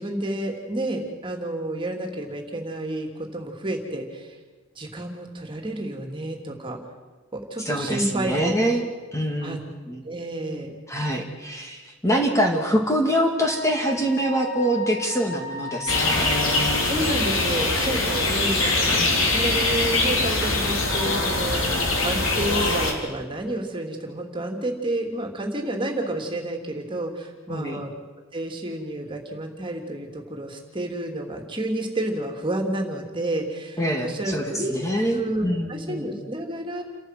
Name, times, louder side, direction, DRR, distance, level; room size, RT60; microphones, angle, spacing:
voice 1, 0.0-4.4 4.7-6.8 7.3-8.5 9.4-9.6 10.0-10.7 16.8-27.9 28.3-34.8 35.1-36.8, right 1 dB, 25° right, 3 dB, 3.1 m, -30 dB
voice 2, 7.7-8.9 9.1-9.6 9.9-10.0 10.9-16.3 19.0-19.2 27.5-27.8 33.8-36.1, equal, 15° left, 2 dB, 2.3 m, -25 dB
Wind instrument woodwind instrument, 13.5-16.9, left 4 dB, 45° left, 6.3 m, -36 dB
sound 1, 15.9-22.9, left 2 dB, 70° left, 3.7 m, -23 dB
29.5 x 14.0 x 7.7 m, 1.4 s
head